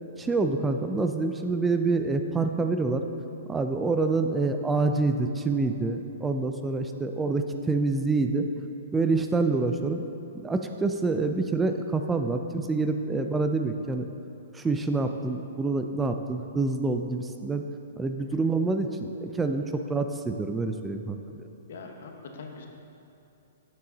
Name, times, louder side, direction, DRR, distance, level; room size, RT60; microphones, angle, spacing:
voice 1, 0.2-3.1 3.5-8.5 8.9-10.0 10.4-14.0 14.5-17.6 18.0-21.4, right 3 dB, 10° right, 6 dB, 0.3 m, -27 dB
voice 2, 21.7-22.7, left 4 dB, 70° left, 3 dB, 0.9 m, -42 dB
7.6 x 5.8 x 3.9 m, 2.8 s
hypercardioid pair, 135°, 0 cm